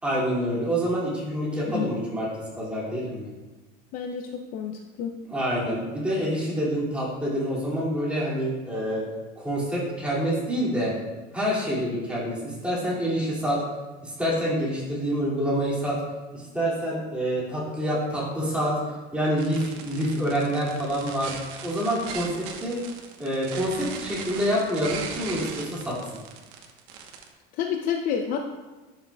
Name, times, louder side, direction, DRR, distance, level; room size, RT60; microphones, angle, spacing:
voice 1, 0.0-3.3 5.3-9.0 9.4-10.9 11.3-13.6 14.0-16.0 16.3-18.8 19.1-21.3 21.6-22.8 23.2-26.0, equal, 5° right, -7 dB, 2.3 m, -27 dB
voice 2, 3.9-5.2 27.5-28.4, left 8 dB, 45° left, 4 dB, 0.5 m, -29 dB
sound 1, 19.4-27.3, right 6 dB, 85° right, 1.0 m, -38 dB
12.0 x 5.6 x 2.3 m, 1.2 s
cardioid pair, 165°, 20 cm